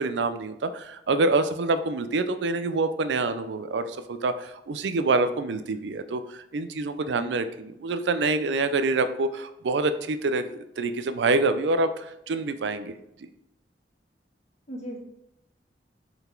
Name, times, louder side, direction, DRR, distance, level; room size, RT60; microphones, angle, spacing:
voice 1, 0.0-7.4 7.8-12.9, right 3 dB, 75° right, 10 dB, 0.4 m, -26 dB
voice 2, 7.1-7.5 14.7-15.0, equal, 40° left, -1 dB, 1.4 m, -38 dB
5.5 x 4.0 x 4.5 m, 0.80 s
head